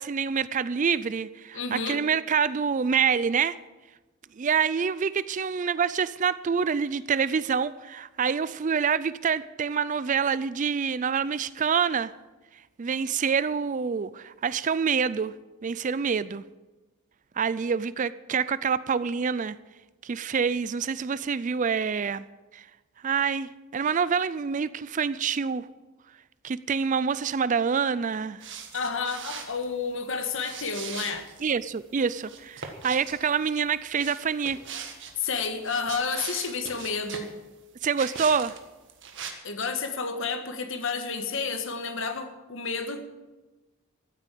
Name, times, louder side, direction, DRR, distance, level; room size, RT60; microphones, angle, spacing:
voice 1, 0.0-3.6 4.3-12.1 12.8-15.3 15.6-16.4 17.4-19.6 20.0-22.2 22.5-22.7 23.0-25.7 26.4-28.4 31.4-34.6 37.8-38.6, right 6 dB, 35° right, 0.4 m, -26 dB
voice 2, 1.5-2.0 28.7-31.3 35.2-37.3 39.4-43.2, left 5 dB, 60° left, 1.6 m, -31 dB
sound 1, 28.4-29.7 30.4-31.5 32.2-33.2 33.9-35.1 35.6-37.3 37.9-38.6 38.9-39.3, right 6 dB, 55° right, 1.6 m, -40 dB
14.0 x 8.7 x 8.4 m
head